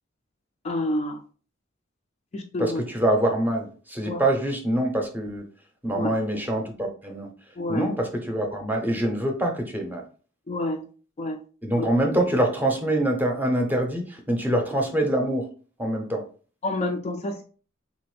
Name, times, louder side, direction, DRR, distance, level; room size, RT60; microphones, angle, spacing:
voice 1, 0.6-1.2 2.3-2.8 4.1-4.2 5.9-6.1 7.6-7.9 10.5-10.8 11.2-11.4 16.6-17.4, left 1 dB, 35° left, 4 dB, 0.3 m, -28 dB
voice 2, 2.6-5.5 5.8-7.3 7.7-10.0 11.6-15.5 15.8-16.2, right 1 dB, 10° right, 3 dB, 0.6 m, -25 dB
3.6 x 2.5 x 3.1 m, 0.39 s
head